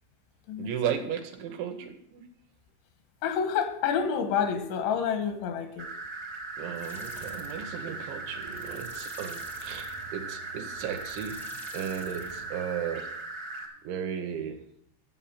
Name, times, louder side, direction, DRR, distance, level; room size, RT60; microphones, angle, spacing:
voice 1, 0.6-2.3 6.6-13.1 13.8-14.6, right 8 dB, 80° right, 4 dB, 3.1 m, -35 dB
voice 2, 3.2-5.9, left 7 dB, 85° left, 6 dB, 3.4 m, -28 dB
sound 1, 5.8-13.7, right 3 dB, 55° right, 1.2 m, -39 dB
sound 2, 6.7-13.1, right 2 dB, 25° left, 0.5 m, -48 dB
11.5 x 7.2 x 5.7 m, 0.72 s
omnidirectional pair, 5.3 m